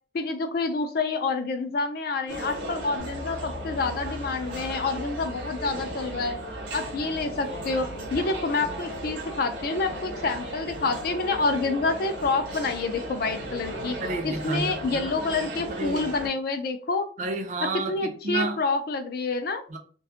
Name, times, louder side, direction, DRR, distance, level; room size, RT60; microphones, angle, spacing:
voice 1, 0.1-6.4 6.7-14.0 14.2-17.1 17.9-19.6, left 3 dB, 50° left, 0.3 m, -28 dB
sound 1, 2.3-16.3, right 1 dB, 75° right, 0.7 m, -36 dB
sound 2, 3.0-8.3, left 1 dB, 85° left, 0.8 m, -43 dB
voice 2, 14.0-15.1 15.7-16.1 17.2-18.6 19.7-19.8, right 2 dB, 40° right, 0.3 m, -31 dB
2.4 x 2.2 x 2.8 m
head